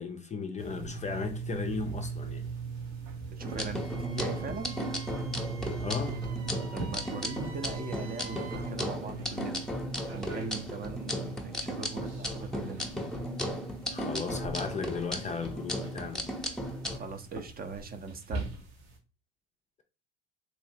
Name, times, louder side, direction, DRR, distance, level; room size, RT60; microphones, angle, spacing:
voice 1, 0.0-2.5 5.8-6.3 13.9-16.2, left 5 dB, 25° left, 0.4 m, -35 dB
sound 1, 0.6-19.0, right 5 dB, 90° right, 1.3 m, -41 dB
sound 2, 3.4-17.0, equal, ahead, 0.8 m, -36 dB
voice 2, 3.4-4.8 6.7-9.7 10.1-12.9 16.9-18.7, right 4 dB, 30° right, 0.6 m, -40 dB
Wind instrument woodwind instrument, 3.5-8.7, right 4 dB, 65° right, 0.9 m, -50 dB
3.1 x 3.1 x 2.7 m
hypercardioid pair, 80°, 30 cm